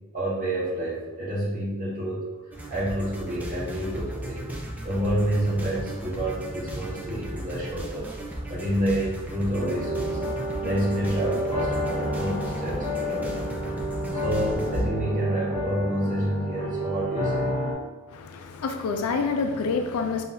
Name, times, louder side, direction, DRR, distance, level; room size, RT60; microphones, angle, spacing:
voice 1, 0.1-4.5 4.8-10.2 10.6-13.4 14.1-17.5, right 1 dB, 40° right, -7 dB, 1.4 m, -28 dB
sound 1, 2.5-14.9, right 1 dB, 10° right, 0.5 m, -36 dB
sound 2, 9.6-17.7, equal, 30° left, 1.1 m, -30 dB
voice 2, 18.1-20.2, left 4 dB, 85° left, 6 dB, 0.4 m, -27 dB
5.6 x 2.7 x 2.6 m, 1.3 s
head